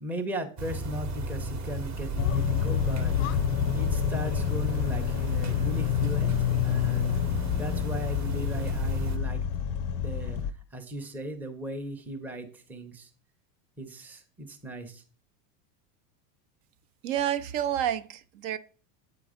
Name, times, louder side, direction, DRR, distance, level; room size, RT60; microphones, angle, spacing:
voice 1, 0.0-3.4 3.7-6.4 6.6-7.2 7.5-9.4 9.9-13.1 13.8-15.0, right 1 dB, 5° right, 0.6 m, -37 dB
sound 1, 0.6-9.2, right 2 dB, 35° right, 1.0 m, -34 dB
sound 2, 2.2-10.5, left 10 dB, 50° left, 0.5 m, -28 dB
voice 2, 17.0-18.6, right 10 dB, 55° right, 0.6 m, -29 dB
8.0 x 3.8 x 4.9 m
supercardioid pair, 130°, 49 cm